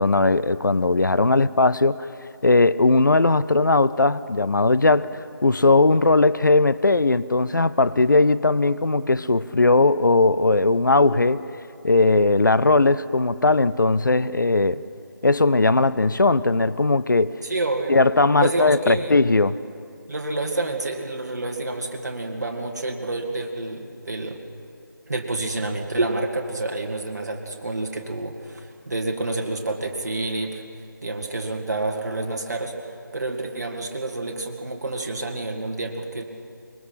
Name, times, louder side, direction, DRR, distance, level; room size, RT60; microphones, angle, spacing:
voice 1, 0.0-2.1 2.4-11.4 11.8-14.8 15.2-17.3 17.9-19.6, left 3 dB, 60° left, 15 dB, 0.6 m, -18 dB
voice 2, 17.4-18.0 18.4-19.2 20.1-24.4 25.1-30.6 31.0-36.2, right 2 dB, 50° right, 2 dB, 2.4 m, -28 dB
24.5 x 22.0 x 5.9 m, 2.5 s
figure-of-eight pair, 160°, 11 cm